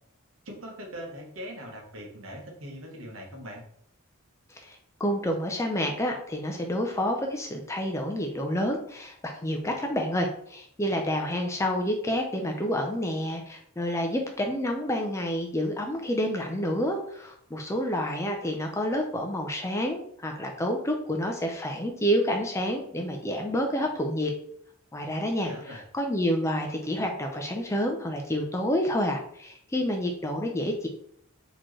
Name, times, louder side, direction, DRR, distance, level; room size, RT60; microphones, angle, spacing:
voice 1, 0.4-3.6 25.0-25.8, equal, 70° right, 1 dB, 1.0 m, -41 dB
voice 2, 4.5-24.3 24.9-30.9, equal, 15° left, 3 dB, 0.4 m, -29 dB
4.3 x 2.9 x 3.1 m, 0.67 s
head